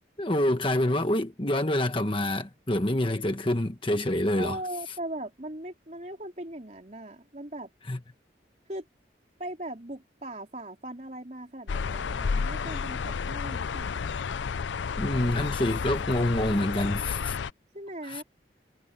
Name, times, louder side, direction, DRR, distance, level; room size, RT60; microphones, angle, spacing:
voice 1, 0.2-4.6 7.9-8.0 15.0-17.4 18.0-18.2, left 1 dB, 30° left, 1.3 m, -27 dB
voice 2, 4.4-7.7 8.7-8.9 9.4-14.2 17.7-18.2, right 1 dB, 40° right, 3.9 m, -39 dB
sound 1, 11.7-17.5, left 5 dB, 80° left, 0.5 m, -31 dB
head